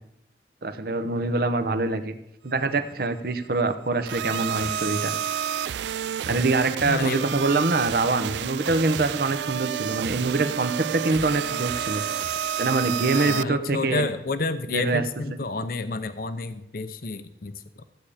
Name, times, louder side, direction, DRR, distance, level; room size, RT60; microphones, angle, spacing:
voice 1, 0.6-2.1 2.4-5.1 6.3-12.0 12.6-14.1 14.7-15.0, right 3 dB, 55° right, 8 dB, 0.9 m, -24 dB
sound 1, 4.1-13.4, right 9 dB, 75° right, 0.3 m, -30 dB
voice 2, 6.8-7.4 13.1-17.8, left 3 dB, 55° left, 11 dB, 0.7 m, -30 dB
15.0 x 8.6 x 5.0 m, 0.78 s
head